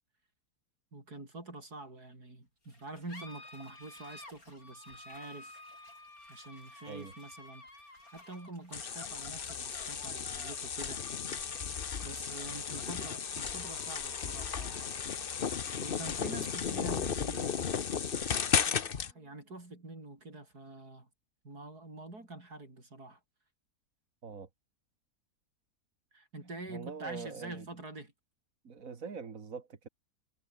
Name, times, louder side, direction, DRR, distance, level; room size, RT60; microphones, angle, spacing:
voice 1, 0.9-5.6 6.3-11.0 12.0-14.9 15.8-17.5 18.7-21.1 21.4-23.2 26.1-28.1, right 2 dB, 75° right, 7.0 m, -46 dB
sound 1, 2.6-19.6, left 2 dB, 60° left, 8.1 m, -54 dB
sound 2, 8.7-19.1, left 7 dB, 40° left, 1.0 m, -34 dB
voice 2, 26.7-27.6 28.6-29.9, right 5 dB, 55° right, 2.3 m, -43 dB
omnidirectional pair, 1.7 m